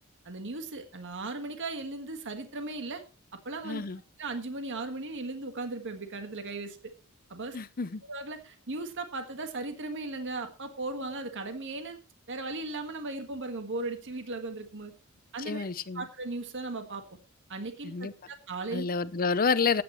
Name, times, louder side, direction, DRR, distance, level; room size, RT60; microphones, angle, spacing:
voice 1, 0.2-3.0 3.3-3.8 4.2-6.8 7.3-7.6 8.1-12.0 12.3-14.9 15.3-15.7 15.9-17.0 17.5-18.8, right 2 dB, 60° right, 1.7 m, -37 dB
voice 2, 3.6-4.0 7.5-8.0 15.4-16.1 17.8-18.1 18.7-19.8, left 5 dB, 40° left, 0.7 m, -29 dB
15.0 x 9.5 x 3.1 m
head